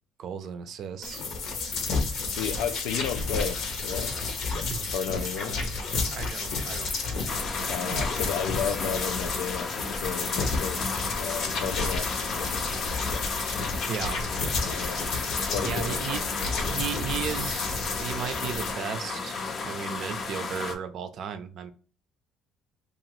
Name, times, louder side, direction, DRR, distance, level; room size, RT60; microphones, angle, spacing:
voice 1, 0.2-1.2 4.5-4.9 5.5-5.6 6.1-7.4 7.9-8.0 13.9-14.2 15.6-16.2 16.7-21.7, right 8 dB, 60° right, 0.5 m, -35 dB
sound 1, 1.0-18.7, left 4 dB, 65° left, 0.8 m, -31 dB
voice 2, 2.2-4.2 4.9-5.6 7.7-10.8 11.2-12.5 14.6-15.0 15.5-16.0, left 8 dB, 90° left, 0.4 m, -33 dB
sound 2, 7.3-20.7, left 4 dB, 40° left, 0.5 m, -34 dB
2.8 x 2.4 x 3.0 m
cardioid pair, 110°, 0 cm